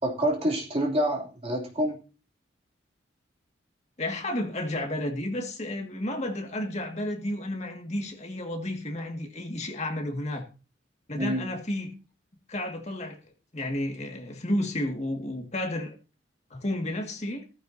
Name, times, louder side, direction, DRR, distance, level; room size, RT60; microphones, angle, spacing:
voice 1, 0.0-2.0 11.2-11.5, equal, 30° right, 3.0 m, -27 dB
voice 2, 4.0-10.5 11.1-11.9 12.5-13.2 13.5-15.9 16.5-17.4, left 1 dB, 35° left, 2.1 m, -32 dB
15.0 x 14.5 x 2.8 m
head